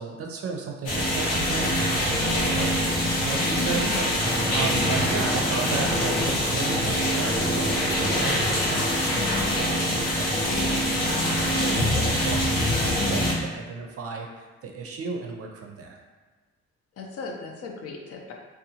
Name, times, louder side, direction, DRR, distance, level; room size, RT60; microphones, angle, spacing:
voice 1, 0.0-7.8 8.2-16.0, right 4 dB, 50° right, 1 dB, 0.5 m, -34 dB
sound 1, 0.9-13.3, equal, 90° left, 0.8 m, -24 dB
voice 2, 3.3-4.4 4.7-5.2 17.0-18.3, left 4 dB, 50° left, 1 dB, 0.5 m, -37 dB
sound 2, 4.2-9.2, right 1 dB, 5° right, 0.5 m, -33 dB
2.7 x 2.3 x 2.8 m, 1.4 s
cardioid pair, 90°, 30 cm